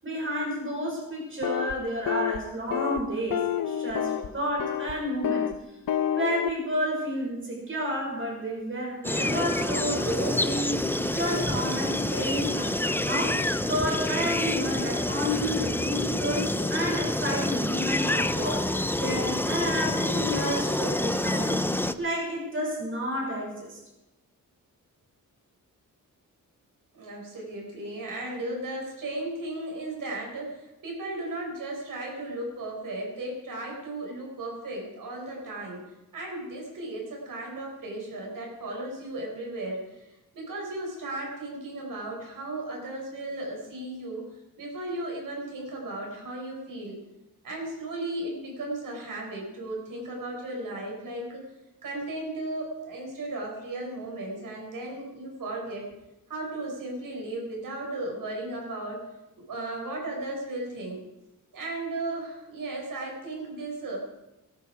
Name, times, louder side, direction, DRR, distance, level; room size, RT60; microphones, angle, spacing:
voice 1, 0.0-5.5 6.2-13.4 13.7-18.6 18.9-21.7 22.0-23.8, equal, 35° right, -2 dB, 6.4 m, -31 dB
sound 1, 1.4-1.7 2.1-2.4 2.7-3.0 3.3-4.3 4.6-4.9 5.2-5.5 5.9-6.5, left 10 dB, 75° left, 1.0 m, -28 dB
sound 2, 9.0-21.9, left 1 dB, 5° left, 0.5 m, -27 dB
voice 2, 26.9-44.2 44.6-47.0 47.4-51.4 51.8-55.8 56.3-59.0 59.5-61.0 61.5-64.0, right 2 dB, 70° right, 0 dB, 6.0 m, -35 dB
18.5 x 13.0 x 5.0 m, 0.96 s
wide cardioid pair, 150°, 34 cm